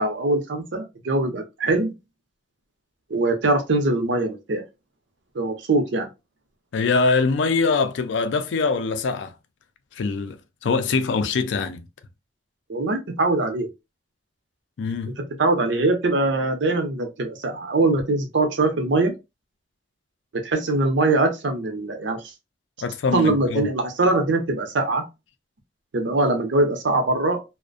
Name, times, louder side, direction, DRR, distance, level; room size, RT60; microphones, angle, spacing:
voice 1, 0.0-1.9 3.1-4.6 5.3-6.1 12.7-13.7 15.4-19.1 20.4-22.2 23.1-25.0 25.9-27.4, right 2 dB, 85° right, 0.6 m, -22 dB
voice 2, 6.7-9.3 10.0-11.9 14.8-15.1 22.8-23.7, left 4 dB, 80° left, 0.4 m, -23 dB
2.4 x 2.1 x 2.5 m
head